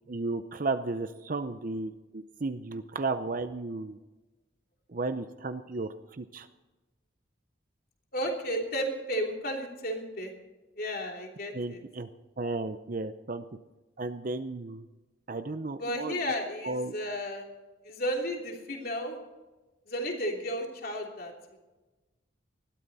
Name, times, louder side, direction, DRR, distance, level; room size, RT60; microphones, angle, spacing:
voice 1, 0.1-4.0 4.9-6.5 11.5-12.1 12.4-13.4 14.0-14.9 15.3-16.3 16.6-16.9, right 3 dB, 45° right, 10 dB, 0.6 m, -34 dB
voice 2, 8.1-10.3 10.8-11.8 15.7-17.5 17.8-19.2 19.9-21.6, equal, 50° left, 1 dB, 3.1 m, -33 dB
20.0 x 13.5 x 4.1 m, 1.1 s
head